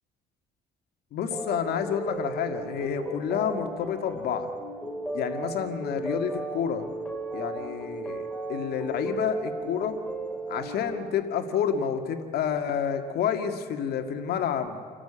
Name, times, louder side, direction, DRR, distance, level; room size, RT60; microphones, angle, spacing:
voice 1, 1.1-4.5 5.1-6.9 7.3-9.9 10.5-14.8, left 8 dB, 70° left, 7 dB, 2.0 m, -29 dB
sound 1, 1.3-11.0, right 2 dB, 5° left, 2.8 m, -35 dB
29.0 x 12.5 x 8.8 m, 2.2 s
cardioid pair, 110°, 17 cm